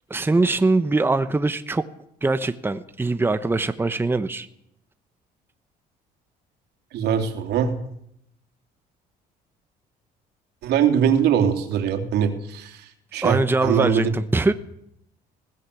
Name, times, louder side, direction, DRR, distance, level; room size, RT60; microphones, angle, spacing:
voice 1, 0.1-1.8 2.2-4.5 13.2-14.5, right 3 dB, 15° right, 10 dB, 1.1 m, -22 dB
voice 2, 6.9-7.7 10.6-12.8 13.1-14.1, right 8 dB, 80° right, 6 dB, 3.3 m, -22 dB
20.5 x 17.0 x 8.5 m, 0.74 s
cardioid pair, 110°, 17 cm